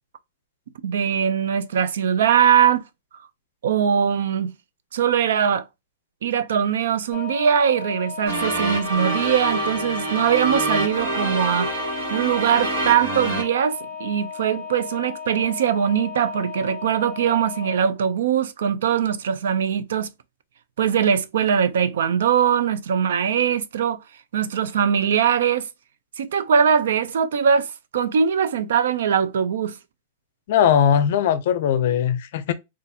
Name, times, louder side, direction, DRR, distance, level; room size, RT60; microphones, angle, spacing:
voice 1, 0.8-2.8 3.6-4.5 4.9-5.6 6.2-11.7 12.1-20.1 20.8-24.0 24.3-25.7 26.2-27.7 27.9-29.8, right 8 dB, 75° right, 0.4 m, -21 dB
sound 1, 7.1-17.8, left 6 dB, 10° left, 1.5 m, -36 dB
sound 2, 8.3-13.4, right 2 dB, 55° right, 1.5 m, -26 dB
voice 2, 30.5-32.5, left 8 dB, 50° left, 0.5 m, -19 dB
4.0 x 2.4 x 2.7 m
supercardioid pair, 175°, 0 cm